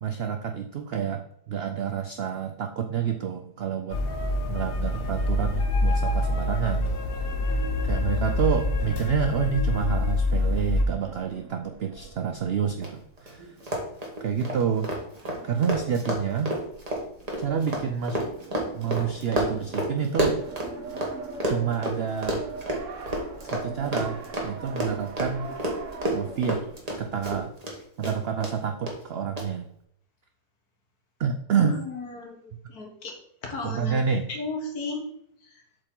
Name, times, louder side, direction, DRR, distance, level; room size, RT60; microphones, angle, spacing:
voice 1, 0.0-4.0 4.5-7.0 7.8-13.6 14.2-14.9 15.4-16.5 17.4-18.2 18.7-20.5 21.4-22.4 23.4-25.5 26.1-26.7 27.0-27.5 28.0-29.7 31.2-31.8 33.6-34.2, right 7 dB, 75° right, 7 dB, 0.5 m, -28 dB
sound 1, 3.9-10.8, left 2 dB, 50° left, 0.8 m, -26 dB
sound 2, 11.0-27.4, right 4 dB, 60° right, 1.1 m, -43 dB
Run, 12.8-12.9 13.2-13.3 13.6-21.1 21.4-27.8 28.0-28.5 28.9-29.0 29.4-29.5, right 1 dB, 25° right, 1.4 m, -29 dB
voice 2, 31.6-33.2 33.4-34.0 34.3-35.0 35.4-35.6, left 3 dB, 70° left, 1 dB, 1.9 m, -35 dB
7.5 x 4.8 x 3.8 m, 0.72 s
omnidirectional pair, 1.6 m